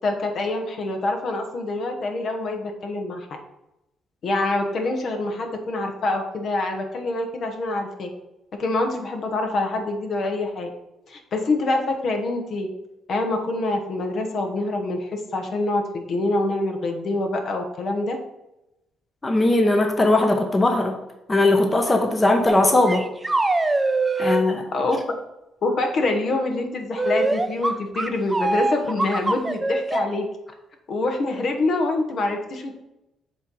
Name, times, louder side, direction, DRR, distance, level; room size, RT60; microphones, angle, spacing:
voice 1, 0.0-3.3 4.2-8.1 8.6-10.7 11.1-12.7 13.1-18.2 24.2-24.4 24.7-25.0 25.6-30.3 30.9-32.7, left 2 dB, 60° left, 4 dB, 1.1 m, -25 dB
voice 2, 19.2-21.0 21.3-23.0 24.2-24.7, left 2 dB, 25° left, 4 dB, 0.9 m, -19 dB
sound 1, 22.5-22.6 22.9-24.5 27.0-30.0, right 2 dB, 20° right, 0.5 m, -23 dB
7.5 x 3.0 x 5.4 m, 0.90 s
cardioid pair, 90°, 0 cm